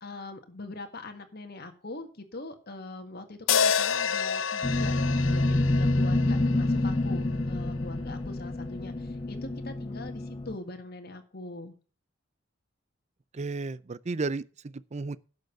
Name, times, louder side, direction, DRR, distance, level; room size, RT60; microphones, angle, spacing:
voice 1, 0.0-11.8, left 2 dB, 50° left, 1.8 m, -42 dB
sound 1, 3.5-7.8, left 7 dB, 80° left, 0.8 m, -29 dB
sound 2, 4.6-10.6, left 2 dB, 25° left, 0.4 m, -27 dB
voice 2, 13.3-15.2, right 3 dB, 35° right, 0.5 m, -33 dB
11.5 x 6.7 x 6.6 m
head